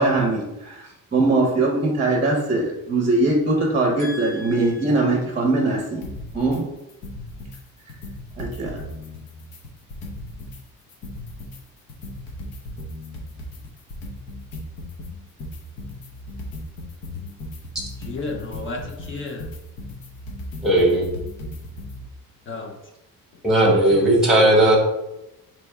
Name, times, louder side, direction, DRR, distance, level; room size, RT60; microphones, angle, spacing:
voice 1, 0.0-6.0 6.3-6.6 8.4-8.8, right 2 dB, 20° right, -1 dB, 0.6 m, -21 dB
voice 2, 4.0-4.8 18.0-19.5 22.5-22.8 23.6-24.3, left 3 dB, 35° left, 1 dB, 0.5 m, -33 dB
sound 1, 6.0-6.6 6.9-7.6 7.9-10.6 10.9-22.0, left 1 dB, 80° left, 1.0 m, -36 dB
voice 3, 20.6-21.1 23.4-24.8, right 1 dB, ahead, -3 dB, 1.0 m, -16 dB
3.3 x 3.0 x 4.6 m, 0.93 s
cardioid pair, 165°, 35 cm